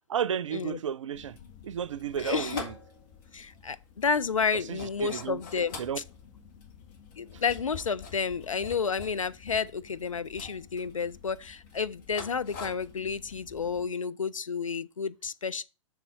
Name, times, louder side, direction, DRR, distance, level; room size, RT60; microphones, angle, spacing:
voice 1, 0.1-1.4 1.6-2.7 4.7-5.4 5.8-6.0, right 8 dB, 70° right, 0.5 m, -32 dB
sound 1, 1.1-13.9, left 4 dB, 40° left, 1.4 m, -46 dB
voice 2, 2.2-2.6 3.3-5.8 7.2-15.6, left 5 dB, 85° left, 0.5 m, -31 dB
6.0 x 4.2 x 5.2 m
figure-of-eight pair, 115°, 16 cm